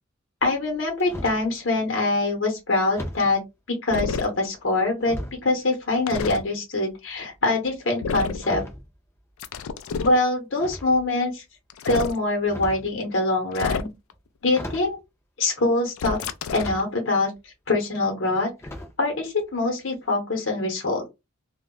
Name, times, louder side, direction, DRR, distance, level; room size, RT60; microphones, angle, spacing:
voice 1, 0.4-3.4 3.8-8.6 10.0-11.4 11.8-13.9 14.4-15.0 15.4-16.2 16.5-18.5 19.0-21.1, left 2 dB, 60° left, 2 dB, 0.8 m, -24 dB
sound 1, 0.5-1.5 2.9-3.3 4.2-4.6 5.0-6.5 6.8-9.8 10.5-11.3 12.2-13.0 14.1-14.2 14.5-15.0 16.2-16.8 17.3-17.4 18.6-19.1 19.4-19.6 19.9-20.0, left 1 dB, 10° left, 0.5 m, -38 dB
sound 2, 3.9-4.3 6.1-6.4 8.0-8.4 9.4-10.2 11.7-12.2 13.5-14.1 16.0-16.8, left 5 dB, 85° left, 0.3 m, -29 dB
2.2 x 2.0 x 3.6 m, 0.23 s
head